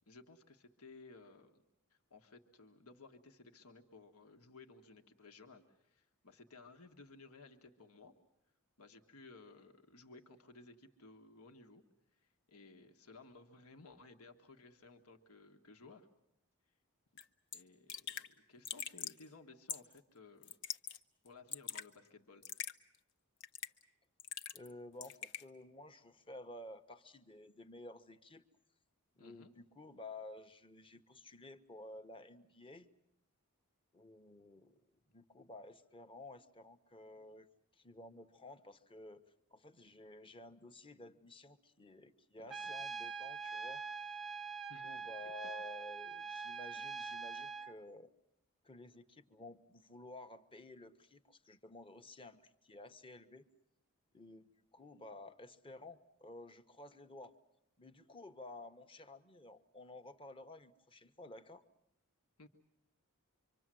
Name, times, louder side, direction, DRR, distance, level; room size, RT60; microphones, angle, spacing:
voice 1, 0.1-1.6 1.9-8.1 8.8-11.8 12.1-16.1 17.5-20.5 21.2-22.4 29.2-29.5 42.4-42.6 44.7-44.9 62.4-62.5, left 3 dB, 80° left, 4 dB, 1.5 m, -58 dB
Raindrop / Drip, 17.2-17.3 17.5-17.6 17.9-18.3 18.6-19.2 19.7-20.0 20.4-21.0 21.3-21.9 22.4-22.7 23.4-23.8 24.2-24.7 25.0-25.4, left 8 dB, 55° left, 0.9 m, -43 dB
voice 2, 24.5-28.4 29.2-32.9 33.9-37.5 37.7-39.2 39.5-44.2 44.8-48.1 48.6-53.5 54.1-57.4 57.8-61.6, left 2 dB, 25° left, 8 dB, 1.0 m, -53 dB
Trumpet, 42.5-47.7, right 5 dB, ahead, 0.9 m, -44 dB
25.5 x 25.0 x 7.6 m, 0.79 s
head